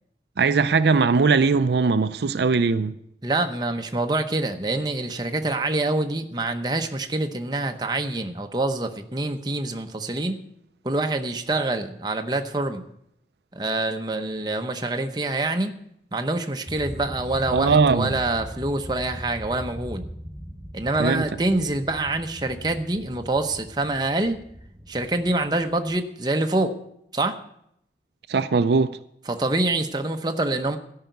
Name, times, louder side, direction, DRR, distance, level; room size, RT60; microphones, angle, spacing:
voice 1, 0.4-2.9 17.5-18.1 21.0-21.3 28.3-29.0, right 4 dB, 70° right, 0.5 m, -20 dB
voice 2, 3.2-10.4 10.8-12.8 13.5-15.8 16.1-20.1 20.7-24.4 24.9-26.7 27.1-27.4 29.3-30.8, right 2 dB, 25° right, 0.8 m, -26 dB
sound 1, 16.7-25.9, equal, 10° left, 4.5 m, -39 dB
13.0 x 5.7 x 9.3 m
head